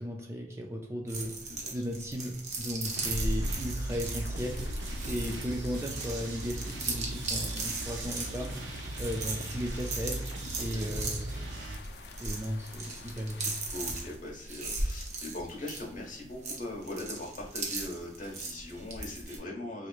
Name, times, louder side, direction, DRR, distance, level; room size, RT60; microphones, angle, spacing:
voice 1, 0.0-1.4 1.7-4.7 5.1-8.5 9.0-10.3 10.6-11.5 12.2-13.5, equal, 15° right, 1 dB, 0.3 m, -36 dB
sound 1, 1.1-19.4, right 3 dB, 40° right, 0.7 m, -38 dB
voice 2, 1.5-1.8 10.6-10.8 13.7-19.9, left 1 dB, 45° left, -2 dB, 1.3 m, -40 dB
sound 2, 2.8-14.2, left 1 dB, 70° left, 0.4 m, -43 dB
sound 3, 3.0-11.8, right 2 dB, 90° right, 0.6 m, -38 dB
4.1 x 3.0 x 2.3 m, 0.70 s
head